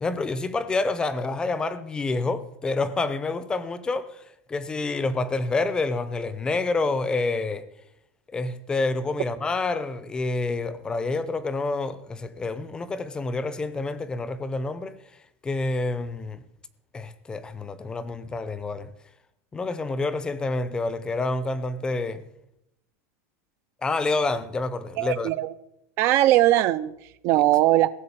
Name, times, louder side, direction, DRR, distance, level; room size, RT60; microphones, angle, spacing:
voice 1, 0.0-4.2 4.5-7.6 8.3-14.9 15.4-16.4 16.9-18.9 19.5-22.2 23.8-25.3, left 3 dB, 10° left, 0.6 m, -28 dB
voice 2, 25.0-25.5 26.0-26.9 27.2-27.9, right 15 dB, 35° right, 0.4 m, -20 dB
16.0 x 7.6 x 8.6 m
supercardioid pair, 175°, 8 cm